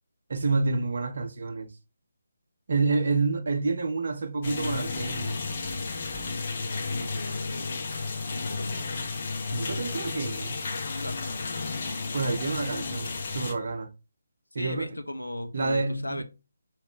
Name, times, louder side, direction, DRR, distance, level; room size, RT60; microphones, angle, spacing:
voice 1, 0.3-1.7 2.7-5.4 9.5-10.6 12.1-13.9 14.5-15.0 15.5-16.2, right 3 dB, 50° right, 0.8 m, -28 dB
sound 1, 4.4-13.5, left 4 dB, 40° left, 0.9 m, -33 dB
voice 2, 6.5-8.8 10.9-11.2 14.6-16.2, left 1 dB, 80° left, 0.8 m, -37 dB
5.0 x 3.1 x 3.2 m
figure-of-eight pair, 150°, 0 cm